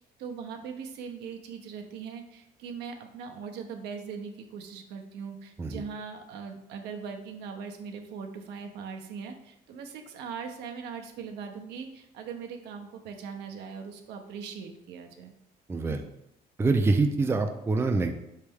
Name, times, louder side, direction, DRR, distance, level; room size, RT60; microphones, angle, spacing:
voice 1, 0.0-15.3, right 6 dB, 85° right, 4 dB, 0.6 m, -40 dB
voice 2, 15.7-16.1 16.6-18.1, right 3 dB, 15° right, 5 dB, 0.3 m, -25 dB
4.3 x 3.2 x 3.4 m, 0.82 s
cardioid pair, 110°, 17 cm